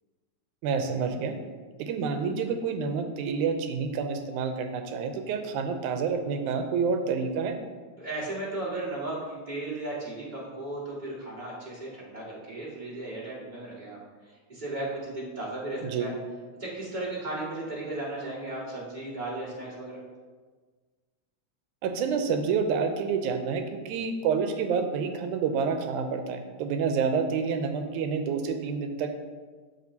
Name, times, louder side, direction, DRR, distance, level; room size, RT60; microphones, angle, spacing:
voice 1, 0.6-1.4 1.8-7.6 15.8-16.1 21.8-29.1, right 5 dB, 85° right, 6 dB, 2.1 m, -28 dB
voice 2, 8.0-14.0 14.5-16.1 16.6-20.0, right 2 dB, 20° right, -8 dB, 1.7 m, -35 dB
12.0 x 4.7 x 2.8 m, 1.4 s
omnidirectional pair, 3.4 m